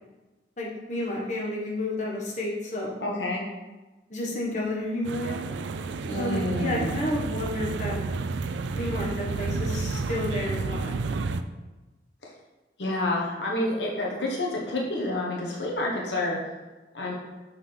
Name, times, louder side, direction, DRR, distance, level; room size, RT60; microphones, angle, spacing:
voice 1, 0.6-3.1 4.1-5.4 6.2-8.0 8.7-11.0, left 1 dB, 45° left, -4 dB, 1.3 m, -31 dB
voice 2, 3.0-3.4 6.0-6.9 12.8-16.4 16.9-17.1, left 1 dB, 85° left, -3 dB, 1.2 m, -28 dB
sound 1, 5.0-11.4, right 4 dB, 85° right, 0.4 m, -31 dB
6.5 x 5.8 x 3.3 m, 1.2 s
head